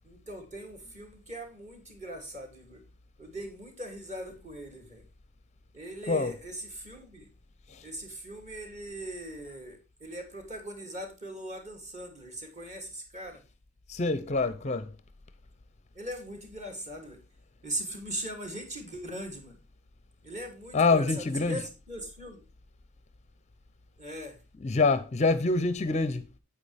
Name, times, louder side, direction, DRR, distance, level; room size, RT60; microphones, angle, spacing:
voice 1, 0.0-2.8 3.2-5.0 5.7-7.3 7.8-13.4 15.9-17.2 17.6-19.6 20.2-22.4 24.0-24.4, right 1 dB, 30° right, 2.8 m, -40 dB
voice 2, 13.9-14.9 20.7-21.6 24.6-26.3, left 3 dB, 30° left, 0.5 m, -26 dB
9.5 x 8.8 x 3.4 m
head